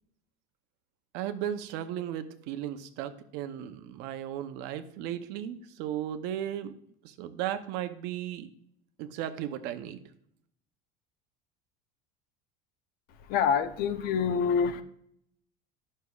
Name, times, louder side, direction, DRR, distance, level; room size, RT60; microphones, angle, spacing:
voice 1, 1.1-6.7 7.0-8.5 9.0-10.0, right 11 dB, 65° right, 0.7 m, -35 dB
voice 2, 13.2-14.8, left 6 dB, 55° left, 0.7 m, -26 dB
9.4 x 6.5 x 2.4 m
supercardioid pair, 125°, 18 cm